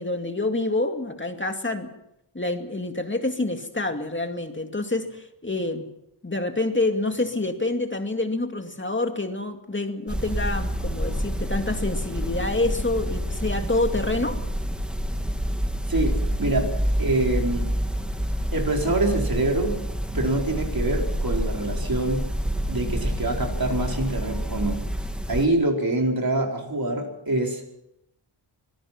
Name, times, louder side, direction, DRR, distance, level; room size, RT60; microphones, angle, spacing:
voice 1, 0.0-1.9 2.3-5.9 6.2-14.4, left 2 dB, 25° left, 5 dB, 2.3 m, -27 dB
sound 1, 10.1-25.4, equal, ahead, 1.8 m, -28 dB
voice 2, 15.9-16.7 17.0-17.7 18.5-19.8 20.1-22.3 22.7-24.8 25.3-27.7, right 2 dB, 45° right, 1 dB, 4.7 m, -25 dB
25.0 x 18.5 x 6.0 m, 0.82 s
wide cardioid pair, 95°, 50 cm